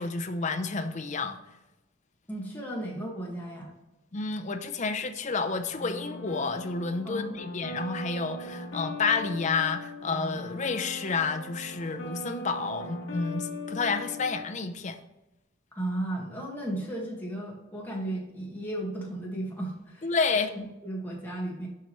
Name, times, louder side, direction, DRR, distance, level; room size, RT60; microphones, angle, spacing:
voice 1, 0.0-1.4 4.1-15.0 20.0-20.5, left 4 dB, 35° left, 8 dB, 0.6 m, -30 dB
voice 2, 2.3-3.7 7.0-7.4 15.7-20.1 20.5-21.7, right 1 dB, 10° left, -3 dB, 1.7 m, -35 dB
sound 1, 5.7-14.4, left 2 dB, 60° left, 1.8 m, -39 dB
7.4 x 5.3 x 3.0 m, 0.97 s
head